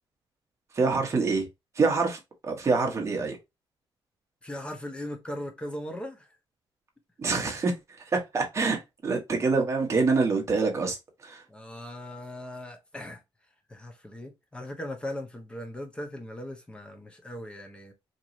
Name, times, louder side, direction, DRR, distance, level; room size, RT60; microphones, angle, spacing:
voice 1, 0.7-1.5 1.7-3.4 7.2-7.7 8.1-11.0 11.2-11.4, right 4 dB, 30° right, 1.2 m, -26 dB
voice 2, 4.4-6.4 11.5-13.2 13.7-17.9, left 1 dB, 10° left, 0.8 m, -39 dB
4.5 x 2.9 x 2.6 m
wide cardioid pair, 165°, 9 cm